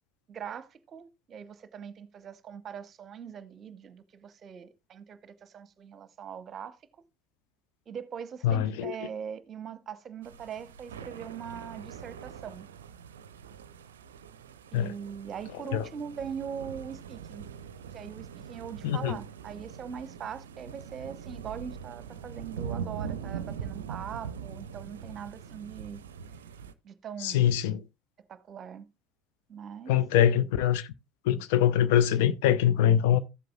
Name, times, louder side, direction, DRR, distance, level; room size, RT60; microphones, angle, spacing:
voice 1, 0.3-6.8 7.9-12.7 14.7-17.4 17.9-26.0 26.8-27.5 28.3-28.8 29.5-30.0, right 7 dB, 35° right, 0.8 m, -41 dB
voice 2, 8.4-8.9 14.7-14.9 15.7-15.9 18.8-19.2 27.2-27.8 29.9-30.9 31.2-33.2, left 10 dB, 60° left, 0.6 m, -23 dB
sound 1, 10.2-26.7, right 7 dB, 70° right, 0.5 m, -42 dB
14.5 x 7.7 x 2.3 m
figure-of-eight pair, 65°, 0 cm